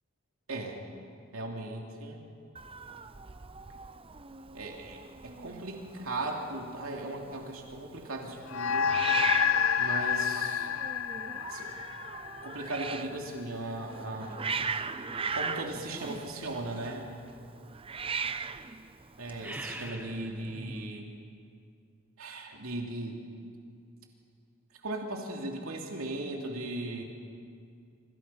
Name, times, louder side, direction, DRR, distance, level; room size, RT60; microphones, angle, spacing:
voice 1, 1.3-2.2 4.5-8.9 9.8-10.7 11.5-11.7 12.4-14.5 15.3-17.1 19.2-21.1 22.2-23.2 24.8-27.0, right 2 dB, 80° right, 1 dB, 3.0 m, -37 dB
Hiss, 2.5-19.9, right 5 dB, 25° right, 0.7 m, -39 dB
sound 1, 8.5-13.2, left 8 dB, 80° left, 0.6 m, -29 dB
sound 2, 19.3-20.9, right 1 dB, 10° right, 1.3 m, -41 dB
27.0 x 25.5 x 5.8 m, 2.3 s
head